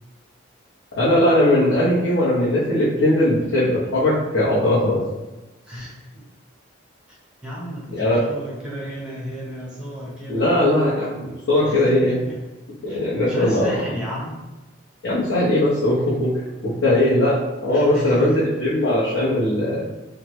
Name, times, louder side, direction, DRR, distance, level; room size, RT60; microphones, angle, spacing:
voice 1, 0.9-5.0 7.9-8.2 10.3-12.2 12.8-13.7 15.0-16.3 16.6-17.3 17.6-19.8, left 1 dB, 65° left, -9 dB, 0.8 m, -19 dB
voice 2, 5.6-6.2 7.1-7.2 7.4-10.5 11.6-12.4 12.9-14.4 17.7-18.5, equal, 5° right, -6 dB, 0.8 m, -33 dB
3.3 x 2.1 x 3.0 m, 1.1 s
head